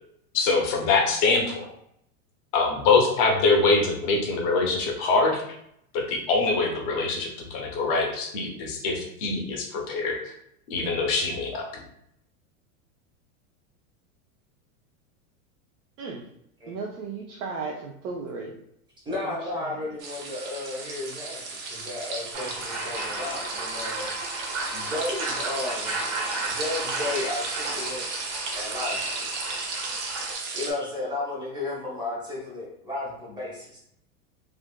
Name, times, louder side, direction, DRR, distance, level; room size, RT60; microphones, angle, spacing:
voice 1, 0.3-1.7 2.5-5.4 5.9-10.2 10.7-11.8, left 3 dB, 30° left, 1 dB, 0.4 m, -24 dB
voice 2, 16.7-18.5 19.5-19.8, right 4 dB, 85° right, -2 dB, 0.7 m, -35 dB
voice 3, 19.1-24.1 24.7-26.0 26.5-28.0 28.5-29.3 30.5-33.8, left 2 dB, 10° right, -5 dB, 0.7 m, -33 dB
sound 1, 20.0-30.7, right 3 dB, 50° right, 0.7 m, -34 dB
sound 2, 22.3-30.3, right 2 dB, 35° right, 1.1 m, -34 dB
3.4 x 2.5 x 2.2 m, 0.73 s
supercardioid pair, 155°, 43 cm